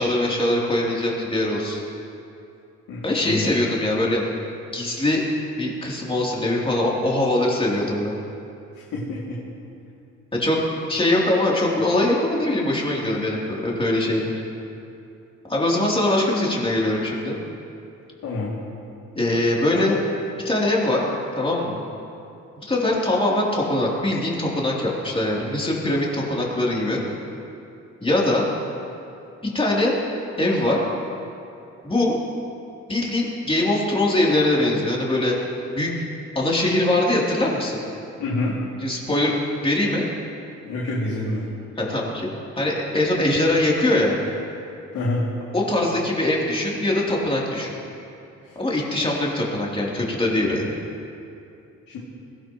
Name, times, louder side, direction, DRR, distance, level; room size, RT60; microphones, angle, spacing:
voice 1, 0.0-1.8 3.0-4.3 4.7-5.2 5.6-8.1 10.3-10.6 10.9-14.3 15.5-17.4 19.1-20.0 20.4-21.0 21.4-21.8 22.5-27.0 28.0-28.4 29.4-29.9 30.4-30.8 31.8-32.2 32.9-35.4 35.7-35.9 36.3-37.8 38.8-39.3 39.6-40.1 41.8-42.3 42.6-44.2 45.5-47.7 48.5-50.7, left 1 dB, 20° left, -4 dB, 3.3 m, -22 dB
voice 2, 2.9-3.5 8.9-9.4 18.2-18.5 38.2-38.6 40.6-41.4 44.9-45.3 48.4-48.5 49.0-49.1 51.9-52.0, left 2 dB, 80° left, -6 dB, 2.6 m, -27 dB
21.0 x 17.0 x 3.1 m, 2.6 s
cardioid pair, 90°, 30 cm